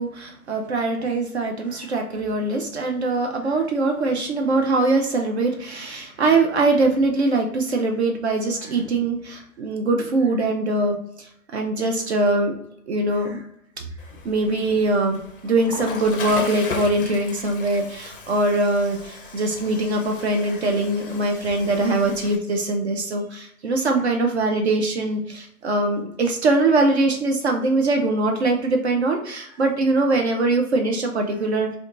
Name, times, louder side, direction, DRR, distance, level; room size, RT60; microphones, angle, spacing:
voice 1, 0.0-12.6 12.9-13.5 13.8-13.9 14.2-31.8, right 2 dB, 50° right, 3 dB, 0.4 m, -22 dB
Water / Toilet flush, 14.0-22.4, left 4 dB, 40° left, 0.4 m, -36 dB
2.6 x 2.2 x 3.6 m, 0.73 s
hypercardioid pair, 135°, 44 cm